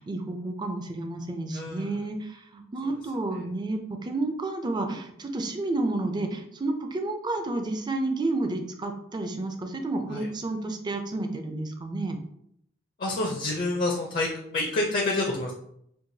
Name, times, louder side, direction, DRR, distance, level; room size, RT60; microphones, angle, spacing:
voice 1, 0.0-12.2, right 2 dB, 20° right, 5 dB, 0.4 m, -31 dB
voice 2, 1.5-1.9 10.1-10.3 13.0-15.5, left 2 dB, 45° left, -1 dB, 0.6 m, -28 dB
4.6 x 2.2 x 2.7 m, 0.73 s
head